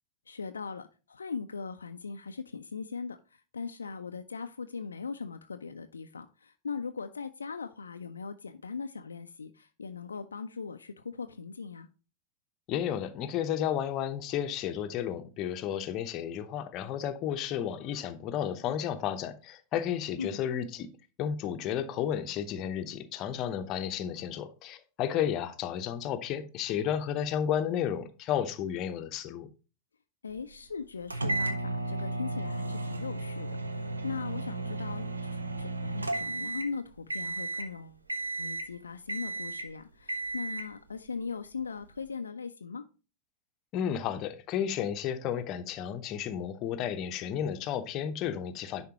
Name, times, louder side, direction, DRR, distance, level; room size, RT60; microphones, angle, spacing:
voice 1, 0.3-11.9 20.2-20.4 30.2-35.3 35.6-38.0 38.4-42.8, left 5 dB, 75° left, 0.4 m, -39 dB
voice 2, 12.7-20.9 21.2-29.5 43.7-48.8, left 9 dB, 35° left, 0.8 m, -32 dB
sound 1, 31.1-36.8 37.1-37.7 38.1-38.7 39.1-39.7 40.1-40.7, right 2 dB, 80° right, 0.7 m, -34 dB
10.5 x 4.3 x 2.9 m
figure-of-eight pair, 90°, 0 cm